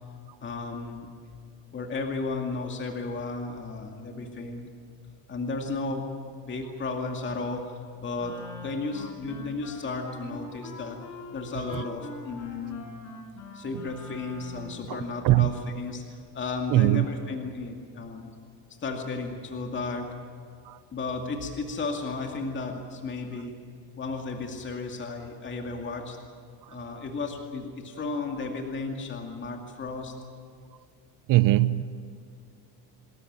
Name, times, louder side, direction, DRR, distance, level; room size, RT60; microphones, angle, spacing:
voice 1, 0.4-1.1 1.7-4.7 5.3-6.1 6.4-11.0 11.3-13.0 13.5-18.3 18.8-20.1 20.9-23.6 24.0-26.2 26.7-30.1, left 3 dB, 30° left, 2.4 m, -34 dB
Wind instrument woodwind instrument, 8.2-14.8, left 2 dB, 45° left, 6.7 m, -43 dB
voice 2, 16.7-17.0 20.7-20.8 31.3-31.8, right 17 dB, 55° right, 0.7 m, -20 dB
27.5 x 13.5 x 9.4 m
cardioid pair, 120°, 40 cm